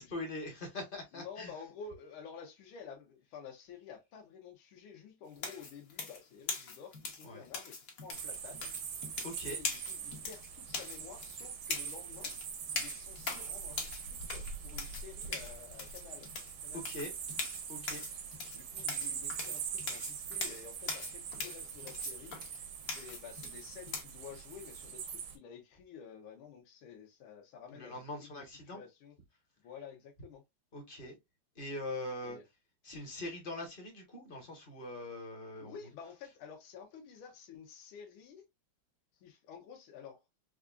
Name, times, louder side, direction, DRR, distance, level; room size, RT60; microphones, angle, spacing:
voice 1, 0.0-1.5 7.2-7.4 9.2-9.6 16.7-17.1 17.7-18.0 27.7-28.8 30.7-31.2 31.5-32.4 32.8-35.7, left 1 dB, 35° left, 0.9 m, -42 dB
voice 2, 1.1-8.7 9.4-12.4 12.7-16.3 16.6-16.8 18.5-22.4 22.9-28.3 28.7-29.1 29.6-30.4 32.2-32.4 35.6-38.5 39.2-40.2, left 6 dB, 80° left, 1.6 m, -51 dB
sound 1, 5.4-24.0, left 4 dB, 50° left, 1.2 m, -42 dB
sound 2, 8.1-25.4, right 7 dB, 85° right, 1.7 m, -43 dB
4.6 x 2.4 x 2.3 m
omnidirectional pair, 2.3 m